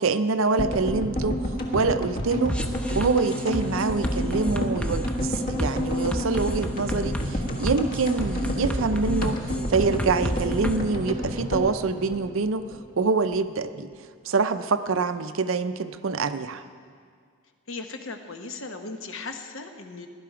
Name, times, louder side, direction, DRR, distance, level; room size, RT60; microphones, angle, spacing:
voice 1, 0.0-1.4 1.7-2.6 2.9-9.4 9.7-12.6 13.0-13.9 14.2-16.6, right 4 dB, 65° right, 11 dB, 0.5 m, -25 dB
sound 1, 0.6-12.8 13.1-13.2 13.3-13.4, equal, 40° left, 1.4 m, -29 dB
sound 2, 2.5-10.8, equal, 5° left, 0.5 m, -31 dB
voice 2, 17.7-20.1, left 3 dB, 60° left, 6 dB, 1.0 m, -37 dB
17.5 x 11.5 x 4.9 m, 2.1 s
head